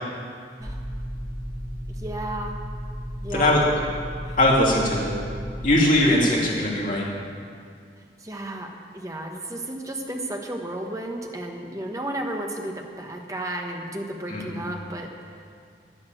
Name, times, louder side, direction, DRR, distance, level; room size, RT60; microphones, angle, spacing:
sound 1, 0.6-5.6, equal, 25° left, 2.4 m, -34 dB
voice 1, 2.0-2.6 3.2-3.8 4.2-4.4 6.2-6.5 8.2-15.4, right 1 dB, 20° right, 2 dB, 1.2 m, -33 dB
voice 2, 3.3-3.6 4.4-5.1 5.6-7.0 14.3-14.6, left 1 dB, 50° left, -4 dB, 2.7 m, -20 dB
11.0 x 9.8 x 7.8 m, 2.2 s
head